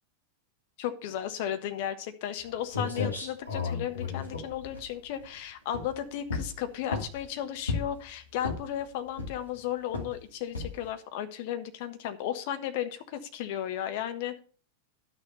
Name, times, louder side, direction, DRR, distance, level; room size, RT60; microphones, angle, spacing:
voice 1, 0.8-14.4, left 10 dB, 50° left, 8 dB, 1.3 m, -34 dB
sound 1, 2.4-2.5 2.7-5.3 5.7-6.0 6.3-7.2 7.7-8.0 8.4-8.8 9.2-9.6 9.9-10.2 10.5-10.9, left 4 dB, 75° left, 2.6 m, -33 dB
11.5 x 6.7 x 5.5 m, 0.39 s
figure-of-eight pair, 90°, 0 cm